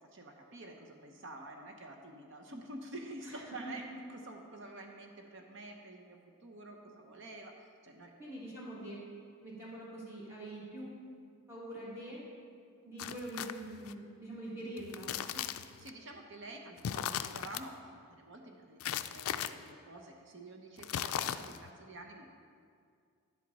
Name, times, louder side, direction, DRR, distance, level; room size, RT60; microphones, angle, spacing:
voice 1, 0.1-8.1 15.3-22.3, right 2 dB, 55° right, 3 dB, 0.8 m, -49 dB
voice 2, 3.2-3.7 8.2-9.0 9.4-10.9 11.5-12.2 12.8-15.2, right 1 dB, 10° right, -7 dB, 2.2 m, -44 dB
sound 1, 13.0-13.9 14.8-15.9 16.8-17.6 18.8-19.5 20.8-21.7, left 10 dB, 70° left, 0.3 m, -37 dB
10.5 x 7.7 x 4.1 m, 2.2 s
head